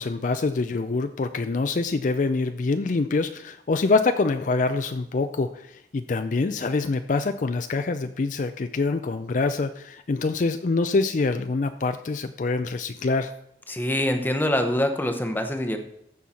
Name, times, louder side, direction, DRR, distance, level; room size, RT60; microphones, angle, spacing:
voice 1, 0.0-13.3, left 3 dB, 45° left, 9 dB, 0.4 m, -25 dB
voice 2, 13.7-15.8, left 1 dB, 10° left, 6 dB, 0.8 m, -24 dB
14.5 x 5.5 x 4.3 m, 0.77 s
head